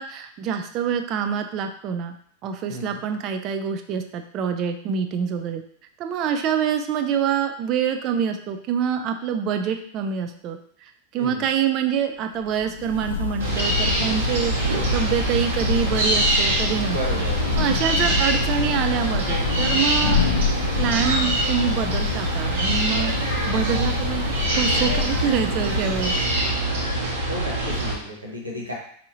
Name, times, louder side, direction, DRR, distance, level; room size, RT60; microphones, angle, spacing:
voice 1, 0.0-2.1 2.4-5.6 6.0-10.6 11.1-17.0 17.6-20.2 20.8-23.1 23.5-26.2, right 8 dB, 35° right, 6 dB, 0.4 m, -26 dB
voice 2, 2.7-3.0 11.2-11.5 16.9-17.5 27.3-28.7, equal, 80° right, -2 dB, 1.0 m, -33 dB
Thunder / Rain, 12.4-26.8, left 5 dB, 70° left, 0.4 m, -28 dB
sound 1, 13.4-27.9, right 1 dB, 60° right, 1.2 m, -24 dB
4.7 x 2.8 x 2.6 m, 0.63 s
figure-of-eight pair, 90°, 0 cm